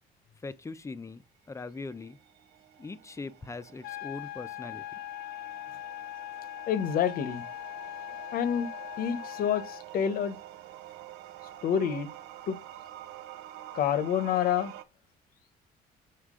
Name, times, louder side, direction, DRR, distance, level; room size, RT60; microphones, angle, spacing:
voice 1, 0.4-1.2 1.5-2.2 2.8-5.0, left 3 dB, 15° left, 0.6 m, -41 dB
sound 1, 1.6-14.8, right 13 dB, 85° right, 0.7 m, -48 dB
sound 2, 3.8-9.8, left 15 dB, 75° left, 0.4 m, -41 dB
voice 2, 6.7-7.4 8.3-8.7 9.0-10.4 11.6-12.1 12.5-12.6 13.7-14.7, left 8 dB, 60° left, 0.9 m, -28 dB
6.6 x 4.4 x 3.7 m
cardioid pair, 110°, 17 cm